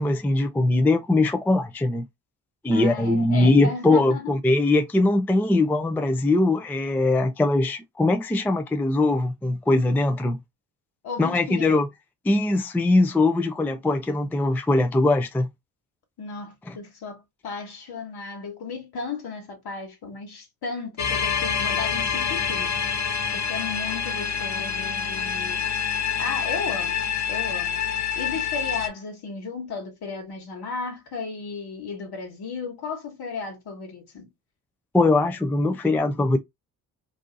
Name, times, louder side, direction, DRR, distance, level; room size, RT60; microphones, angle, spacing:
voice 1, 0.0-2.0 2.6-10.4 11.2-11.9 12.2-15.5 16.7-16.8 34.9-36.4, left 2 dB, 5° left, 0.4 m, -21 dB
voice 2, 2.7-4.3 11.0-11.9 16.2-25.7 26.2-27.0 27.3-27.8 28.1-34.3, left 4 dB, 60° left, 1.4 m, -35 dB
sound 1, 21.0-28.9, left 7 dB, 40° left, 0.9 m, -27 dB
2.7 x 2.4 x 3.8 m
hypercardioid pair, 45°, 44 cm